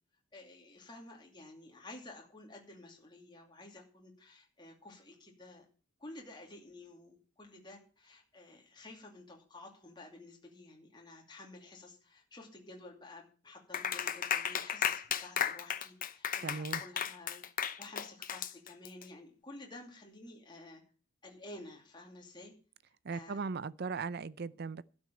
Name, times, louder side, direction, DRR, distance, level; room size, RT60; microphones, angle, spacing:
voice 1, 0.3-5.6 6.0-17.4 17.8-20.8 21.2-22.5 23.1-23.4, left 2 dB, 20° left, 2.7 m, -52 dB
Clapping, 13.7-19.0, left 8 dB, 40° left, 0.8 m, -34 dB
voice 2, 16.4-16.8 23.0-24.8, right 4 dB, 50° right, 0.5 m, -38 dB
12.5 x 6.3 x 9.0 m
head